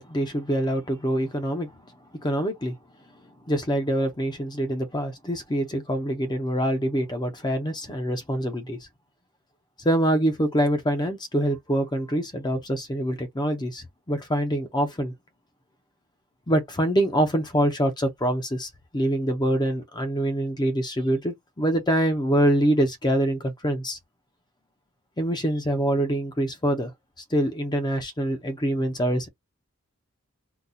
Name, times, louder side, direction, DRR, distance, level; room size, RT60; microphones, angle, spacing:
voice 1, 0.0-1.7 2.2-2.7 3.5-8.8 9.8-15.1 16.5-24.0 25.2-26.9 27.3-29.3, right 1 dB, 20° left, 0.6 m, -25 dB
3.8 x 2.3 x 2.7 m
head